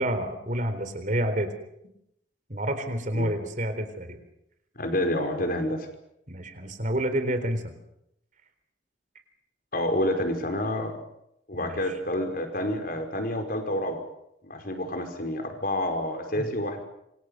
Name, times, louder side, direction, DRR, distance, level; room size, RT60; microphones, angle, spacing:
voice 1, 0.0-1.5 2.5-4.2 6.3-7.8 11.5-12.0 16.4-16.5, right 1 dB, 40° right, 9 dB, 4.0 m, -29 dB
voice 2, 4.7-5.9 9.7-11.0 11.5-14.0 14.4-16.8, left 1 dB, 50° left, 5 dB, 5.0 m, -28 dB
27.5 x 25.0 x 6.7 m, 0.79 s
head